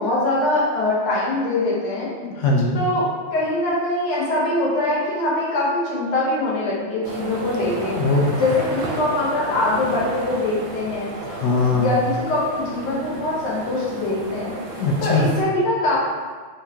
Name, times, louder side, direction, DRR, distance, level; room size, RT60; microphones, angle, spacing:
voice 1, 0.0-2.1 2.7-8.0 8.4-11.1 11.7-14.5 15.0-16.0, left 2 dB, 60° left, -5 dB, 1.5 m, -23 dB
voice 2, 2.2-2.8 8.0-8.3 11.2-12.0 14.8-15.3, left 3 dB, 80° left, -2 dB, 0.9 m, -20 dB
sound 1, 7.0-15.4, right 3 dB, 75° right, 1.3 m, -33 dB
3.6 x 2.8 x 3.4 m, 1.5 s
omnidirectional pair, 2.3 m